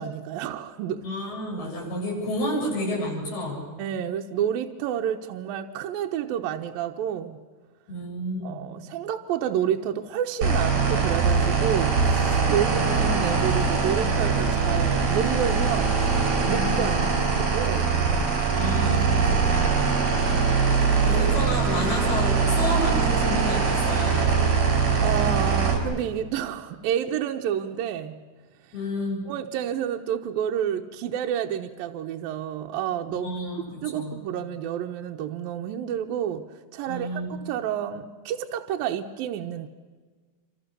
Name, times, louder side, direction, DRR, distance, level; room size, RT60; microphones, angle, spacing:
voice 1, 0.0-1.0 3.8-7.4 8.4-16.0 16.5-18.0 20.2-21.0 25.0-28.2 29.3-33.3 33.8-36.4 36.7-39.7, right 9 dB, 75° right, 4 dB, 2.6 m, -29 dB
voice 2, 1.0-3.6 7.9-8.6 16.5-16.9 18.5-20.0 21.0-24.3 28.7-29.2 33.1-34.2 36.8-37.4, left 1 dB, 90° left, -4 dB, 10.0 m, -30 dB
sound 1, 10.4-25.8, right 5 dB, 55° right, 6.1 m, -22 dB
27.5 x 26.5 x 6.8 m, 1.5 s
omnidirectional pair, 4.3 m